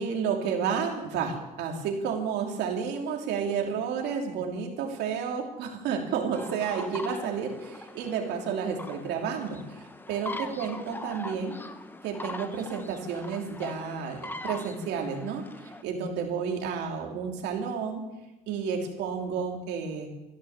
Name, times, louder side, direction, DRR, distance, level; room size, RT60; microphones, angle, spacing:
voice 1, 0.0-11.6 12.0-15.4 15.8-18.1 18.5-20.1, right 6 dB, 85° right, 2 dB, 3.0 m, -31 dB
sound 1, 6.3-15.8, left 2 dB, 10° left, 1.1 m, -41 dB
14.5 x 11.0 x 7.3 m, 1.0 s
cardioid pair, 110°, 17 cm